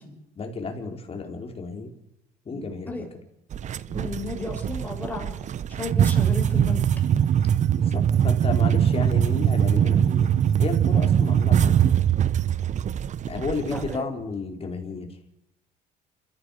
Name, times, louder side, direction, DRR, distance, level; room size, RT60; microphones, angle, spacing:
voice 1, 0.4-1.9 2.5-3.1 7.8-10.3 10.6-12.0 13.3-15.1, left 4 dB, 35° left, 3 dB, 4.4 m, -32 dB
voice 2, 2.5-3.0 3.9-5.3 5.8-6.8 13.7-14.0, left 3 dB, 10° left, 0 dB, 6.8 m, -34 dB
sound 1, 3.5-14.0, right 9 dB, 45° right, 0.8 m, -22 dB
28.0 x 15.0 x 6.6 m, 0.83 s
cardioid pair, 110°, 17 cm